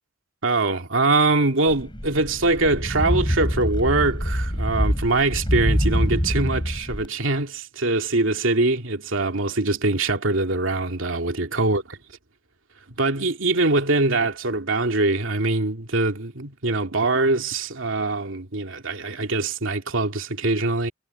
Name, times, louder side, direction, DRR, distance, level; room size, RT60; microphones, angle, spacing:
voice 1, 0.4-12.0 13.0-20.9, right 2 dB, 90° right, 2.5 m, -23 dB
sound 1, 1.7-7.1, equal, 25° left, 7.1 m, -25 dB
head